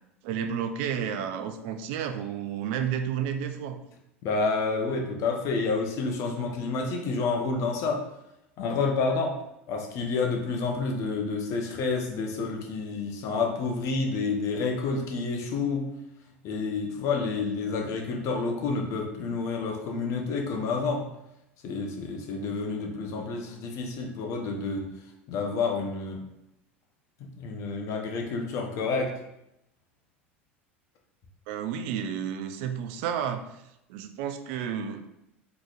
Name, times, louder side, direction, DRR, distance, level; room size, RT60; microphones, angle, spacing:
voice 1, 0.2-3.8 31.5-33.4 33.9-35.1, right 8 dB, 60° right, 8 dB, 0.4 m, -31 dB
voice 2, 4.2-8.0 8.6-9.4 9.7-15.9 16.4-21.0 21.6-24.9 25.3-26.2 27.2-29.1, left 4 dB, 50° left, 2 dB, 0.7 m, -29 dB
3.8 x 3.0 x 2.4 m, 0.83 s
hypercardioid pair, 80°, 7 cm